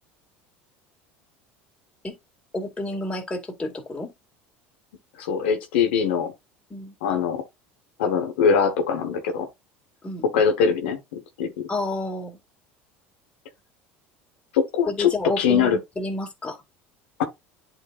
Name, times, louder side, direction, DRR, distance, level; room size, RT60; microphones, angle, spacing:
voice 1, 2.5-4.1 6.7-6.9 10.0-10.2 11.7-12.4 14.9-16.6, left 2 dB, 20° left, 2.2 m, -30 dB
voice 2, 5.2-6.3 7.0-7.4 8.0-9.5 10.3-11.0 11.4-11.7 14.5-15.1 15.4-15.8 17.2-17.3, left 6 dB, 80° left, 1.2 m, -22 dB
10.5 x 3.9 x 2.4 m
hypercardioid pair, 80°, 6 cm